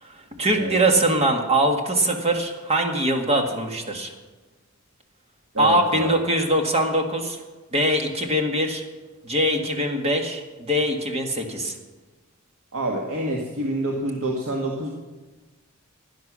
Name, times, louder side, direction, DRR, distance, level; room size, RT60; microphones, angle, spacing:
voice 1, 0.0-4.1 5.6-7.4 7.7-8.8 9.2-11.7, right 1 dB, 30° right, 3 dB, 1.9 m, -22 dB
voice 2, 5.5-6.1 12.7-14.9, right 1 dB, 75° right, -1 dB, 1.9 m, -27 dB
16.5 x 10.5 x 6.3 m, 1.2 s
head